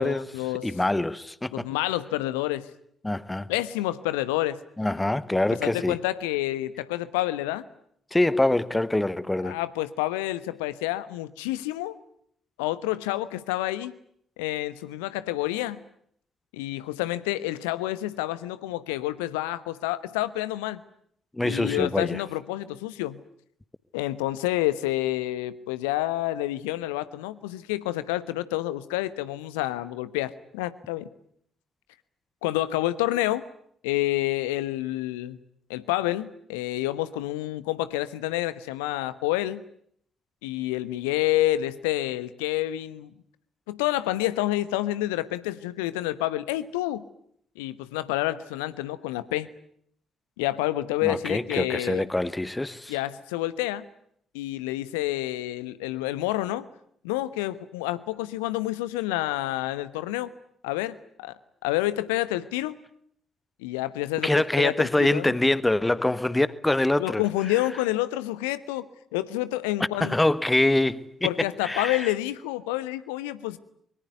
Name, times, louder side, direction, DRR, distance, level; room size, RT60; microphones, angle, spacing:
voice 1, 0.0-0.7 1.5-2.7 3.5-4.6 5.6-7.7 9.4-11.9 12.6-13.9 14.4-15.8 16.5-20.8 21.4-23.2 23.9-31.1 32.4-33.4 33.8-35.4 35.7-39.6 40.4-43.1 43.7-47.0 47.6-49.5 50.4-52.0 52.9-53.8 54.3-56.7 57.0-60.3 60.6-61.3 61.6-62.8 63.6-65.3 67.0-68.8 69.1-70.1 71.2-73.6, left 16 dB, 70° left, 1.1 m, -28 dB
voice 2, 0.6-1.7 3.0-3.5 4.8-6.0 8.1-9.6 21.3-22.2 51.0-52.9 64.2-67.2 70.0-72.1, left 1 dB, 15° left, 1.3 m, -25 dB
24.5 x 23.0 x 9.4 m
figure-of-eight pair, 40°, 0 cm